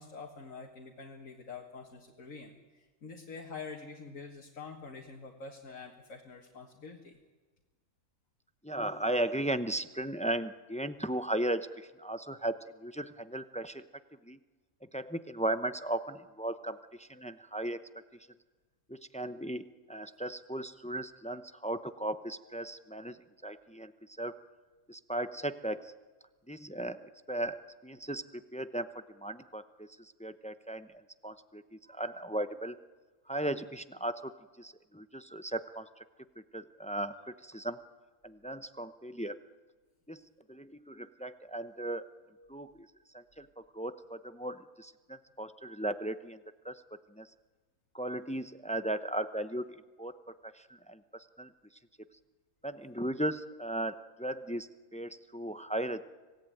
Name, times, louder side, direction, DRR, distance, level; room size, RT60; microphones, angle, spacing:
voice 1, 0.0-7.2, left 4 dB, 65° left, 1 dB, 2.2 m, -46 dB
voice 2, 8.6-13.9 14.3-14.4 14.9-17.8 18.9-23.2 23.4-24.4 24.9-25.9 26.5-28.2 28.5-30.9 31.2-32.7 33.3-34.3 34.6-36.0 36.5-37.8 38.2-39.4 40.1-42.1 42.5-42.7 43.1-46.4 46.6-46.8 47.1-47.3 47.9-50.2 50.4-51.0 51.4-51.5 52.6-56.0, right 1 dB, 10° left, 11 dB, 0.4 m, -36 dB
26.0 x 17.5 x 9.1 m, 1.3 s
omnidirectional pair, 1.5 m